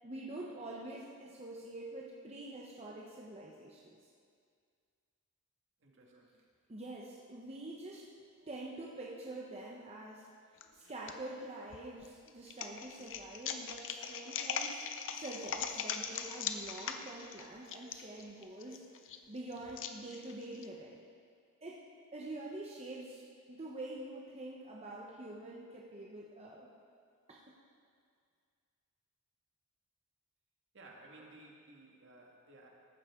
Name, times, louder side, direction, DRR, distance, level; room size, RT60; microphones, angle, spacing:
voice 1, 0.0-4.0 6.0-6.3 6.7-8.1 8.4-10.3 10.7-14.8 15.1-18.8 19.3-21.0 21.6-21.8 22.1-23.2 23.5-26.7 27.3-27.6 31.1-31.4, right 2 dB, 30° right, -3 dB, 1.0 m, -46 dB
voice 2, 5.8-6.3 30.7-32.7, right 2 dB, 60° right, -1 dB, 1.9 m, -57 dB
sound 1, 10.6-11.1 11.7-20.7, left 7 dB, 60° left, 0.7 m, -40 dB
14.5 x 11.5 x 3.7 m, 2.2 s
head